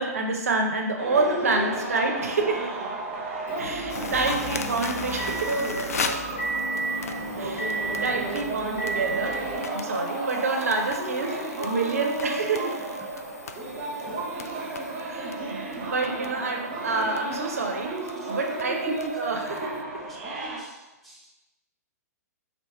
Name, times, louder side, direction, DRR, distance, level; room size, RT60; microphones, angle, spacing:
voice 1, 0.0-2.6 3.6-5.6 7.4-9.3 9.7-11.3 11.6-12.8 15.0-17.9 18.3-19.9, right 3 dB, 60° right, 2 dB, 0.6 m, -28 dB
voice 2, 1.0-1.8 2.1-2.2 11.0-11.8 13.1-13.2 18.2-19.1 20.0-20.1 20.4-21.3, equal, ahead, -5 dB, 0.6 m, -37 dB
sound 1, 1.0-20.6, right 2 dB, 35° right, 0.8 m, -33 dB
Motor vehicle (road) / Engine, 3.5-9.6, right 2 dB, 45° left, 0.9 m, -33 dB
sound 2, 3.9-19.8, left 5 dB, 65° left, 0.3 m, -39 dB
3.4 x 2.7 x 4.2 m, 1.0 s
figure-of-eight pair, 115°, 9 cm